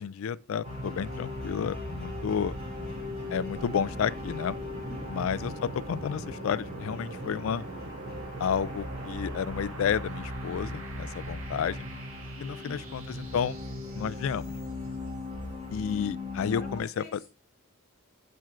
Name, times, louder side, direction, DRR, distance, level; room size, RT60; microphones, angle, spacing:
voice 1, 0.0-2.5 3.3-4.6 5.1-7.6 8.4-11.9 12.4-13.6 13.9-14.5 15.7-17.2, left 7 dB, 65° left, 0.3 m, -31 dB
sound 1, 0.6-16.8, left 2 dB, 30° right, 2.6 m, -39 dB
sound 2, 1.1-15.0, right 2 dB, 80° right, 1.5 m, -44 dB
voice 2, 4.9-5.3 12.4-12.9 16.4-17.3, left 1 dB, 40° left, 0.8 m, -47 dB
12.0 x 4.5 x 2.4 m
head